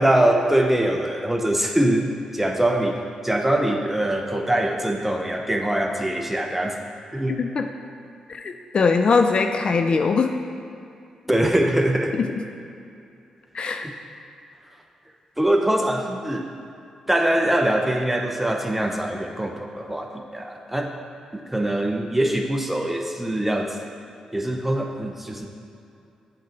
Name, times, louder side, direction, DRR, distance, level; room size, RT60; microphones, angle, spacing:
voice 1, 0.0-3.0 3.2-6.8 7.1-7.4 11.3-12.2 13.7-13.9 15.4-16.4 17.1-20.9 21.3-23.8 24.3-25.5, right 1 dB, 10° right, 2 dB, 0.8 m, -23 dB
voice 2, 7.3-7.6 8.3-10.3 13.5-13.9, left 4 dB, 55° left, 6 dB, 0.4 m, -21 dB
7.5 x 3.8 x 4.5 m, 2.6 s
supercardioid pair, 55°, 2 cm